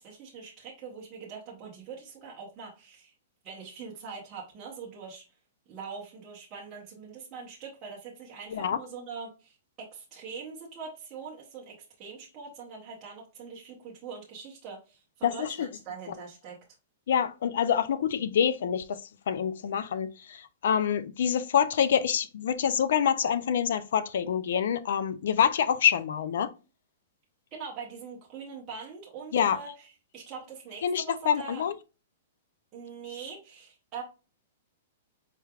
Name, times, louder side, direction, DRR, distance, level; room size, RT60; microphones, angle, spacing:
voice 1, 0.0-3.1 3.4-5.2 5.7-16.6 27.5-31.6 32.7-34.0, right 5 dB, 20° right, 0.8 m, -43 dB
voice 2, 15.2-15.7 17.1-19.0 19.3-26.5 29.3-29.6 30.8-31.7, left 8 dB, 60° left, 0.4 m, -26 dB
4.6 x 3.2 x 2.3 m
hypercardioid pair, 175°, 0 cm